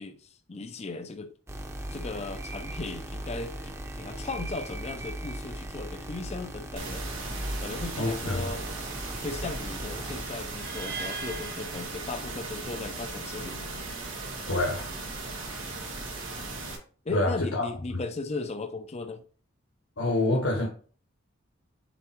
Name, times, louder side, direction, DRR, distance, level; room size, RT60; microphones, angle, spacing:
voice 1, 0.0-1.3 1.9-8.7 9.2-13.7 17.0-19.2, left 3 dB, 30° left, 0.5 m, -37 dB
sound 1, 1.5-10.2, right 1 dB, 15° right, 0.7 m, -38 dB
sound 2, 6.8-16.8, right 3 dB, 85° right, 2.8 m, -37 dB
voice 2, 8.0-8.5 14.5-14.9 17.1-17.6 17.9-18.0 20.0-20.7, left 2 dB, 75° left, 1.5 m, -26 dB
sound 3, 10.5-12.7, right 4 dB, 50° right, 0.9 m, -40 dB
7.1 x 4.2 x 4.5 m
head